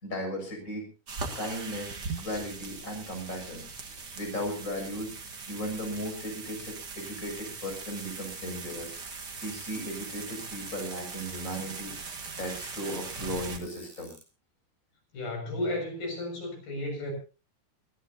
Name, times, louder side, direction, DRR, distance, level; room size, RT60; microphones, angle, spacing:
voice 1, 0.0-0.8 1.3-5.1 5.5-14.1, equal, 20° left, 1 dB, 7.1 m, -36 dB
sound 1, 1.1-13.6, right 4 dB, 35° right, 1.8 m, -40 dB
sound 2, 7.5-14.2, right 1 dB, 5° right, 4.1 m, -53 dB
voice 2, 15.1-17.1, left 1 dB, 75° left, 2 dB, 8.4 m, -33 dB
25.5 x 15.0 x 2.8 m, 0.33 s
omnidirectional pair, 4.4 m